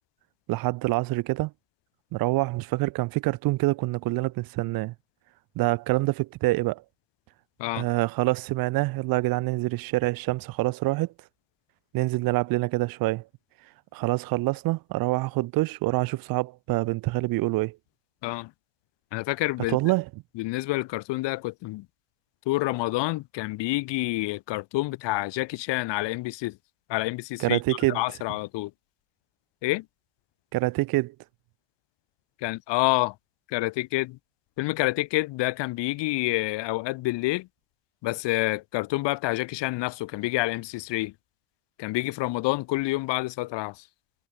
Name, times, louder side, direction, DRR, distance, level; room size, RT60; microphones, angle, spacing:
voice 1, 0.5-1.5 2.1-4.9 5.6-6.8 7.7-11.1 11.9-13.2 13.9-17.8 19.7-20.1 27.4-28.0 30.5-31.1, right 20 dB, 50° right, 0.5 m, -26 dB
voice 2, 19.1-19.9 20.3-21.8 22.4-26.6 26.9-28.7 29.6-29.8 32.4-33.1 33.5-34.2 34.6-37.5 38.0-41.1 41.8-43.8, left 20 dB, 65° left, 1.7 m, -28 dB
hypercardioid pair, 65°, 46 cm